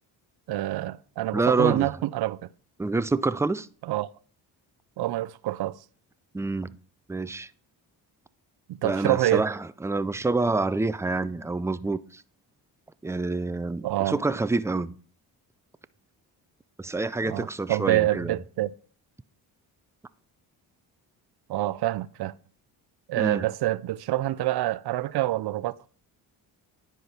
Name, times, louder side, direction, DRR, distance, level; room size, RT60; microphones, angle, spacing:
voice 1, 0.5-2.4 3.8-4.1 5.0-5.8 8.8-9.4 13.8-14.2 17.2-18.7 21.5-22.3 23.1-25.9, right 15 dB, 60° right, 0.5 m, -26 dB
voice 2, 1.3-1.9 2.8-3.7 6.3-6.7 7.1-7.5 8.8-12.2 13.0-14.9 16.8-18.4 23.2-23.4, right 3 dB, 5° right, 0.3 m, -27 dB
10.0 x 5.1 x 4.2 m
supercardioid pair, 65°, 45 cm